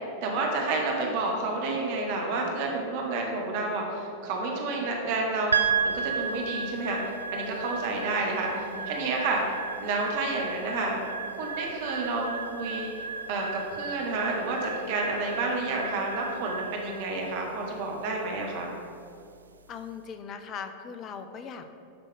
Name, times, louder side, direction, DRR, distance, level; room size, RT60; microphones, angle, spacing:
voice 1, 0.2-5.6 5.8-7.0 7.3-9.4 9.8-11.0 11.4-12.9 13.3-13.5 13.8-18.7, right 3 dB, 50° right, 0 dB, 1.2 m, -30 dB
sound 1, 5.5-19.9, right 6 dB, 75° right, 0.4 m, -34 dB
voice 2, 8.4-9.1 19.7-21.7, left 6 dB, 30° left, 8 dB, 0.6 m, -40 dB
11.0 x 5.4 x 3.4 m, 2.7 s
figure-of-eight pair, 90°, 0 cm